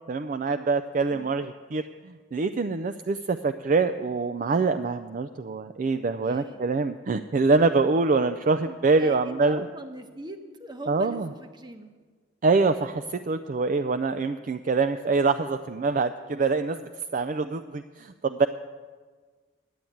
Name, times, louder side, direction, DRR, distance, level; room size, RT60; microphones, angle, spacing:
voice 1, 0.1-9.7 10.9-11.3 12.4-18.5, right 4 dB, 40° right, 10 dB, 0.3 m, -25 dB
voice 2, 6.2-6.6 9.0-11.9, right 1 dB, 20° right, 6 dB, 0.9 m, -41 dB
11.0 x 8.5 x 9.1 m, 1.5 s
head